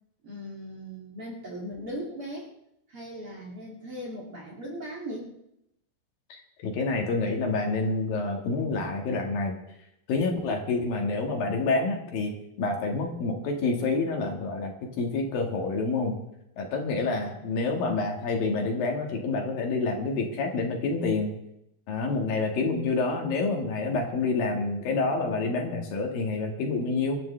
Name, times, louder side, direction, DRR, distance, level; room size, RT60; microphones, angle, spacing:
voice 1, 0.2-2.5 2.9-5.3, equal, 35° right, -3 dB, 2.9 m, -38 dB
voice 2, 6.3-9.5 10.1-12.3 12.6-16.2 16.6-21.3 21.9-27.2, left 3 dB, 65° left, 2 dB, 3.4 m, -28 dB
24.5 x 12.5 x 3.3 m, 0.81 s
omnidirectional pair, 4.6 m